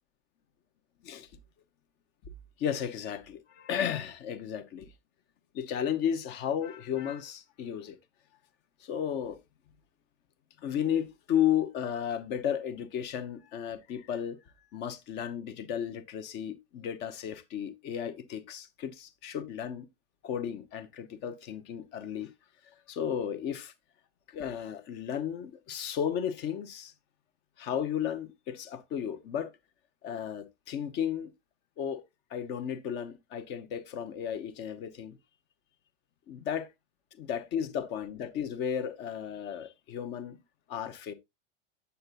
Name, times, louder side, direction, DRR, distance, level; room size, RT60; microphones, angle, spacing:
voice 1, 2.6-4.9 5.5-8.0 8.8-9.4 10.6-14.4 14.7-19.9 20.2-22.3 22.6-23.7 24.3-26.9 27.6-29.5 30.0-31.3 31.8-32.0 32.3-35.2 36.3-36.7 37.1-40.4 40.7-41.1, left 9 dB, 30° left, 0.7 m, -34 dB
7.7 x 6.7 x 2.4 m
figure-of-eight pair, 90°, 35 cm